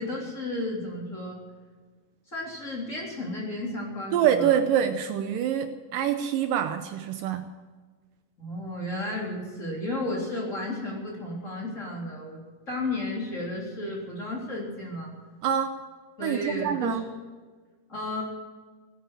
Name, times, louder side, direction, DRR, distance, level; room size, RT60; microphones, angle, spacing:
voice 1, 0.0-1.4 2.3-4.5 8.4-15.1 16.2-17.0 17.9-18.2, left 1 dB, 20° left, -3 dB, 3.6 m, -33 dB
voice 2, 4.1-7.5 15.4-15.8 16.2-17.0, right 9 dB, 80° right, 8 dB, 2.3 m, -25 dB
17.5 x 10.5 x 7.5 m, 1.4 s
omnidirectional pair, 4.2 m